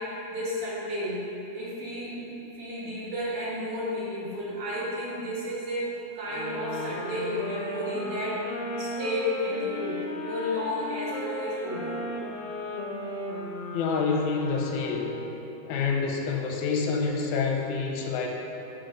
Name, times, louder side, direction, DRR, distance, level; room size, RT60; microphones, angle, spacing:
voice 1, 0.0-12.0, left 1 dB, 75° right, -7 dB, 2.8 m, -32 dB
sound 1, 6.2-15.5, left 1 dB, 70° left, 1.8 m, -35 dB
voice 2, 13.7-15.1 15.7-18.3, left 5 dB, 85° left, 0 dB, 2.1 m, -27 dB
8.1 x 4.0 x 5.1 m, 2.9 s
omnidirectional pair, 3.5 m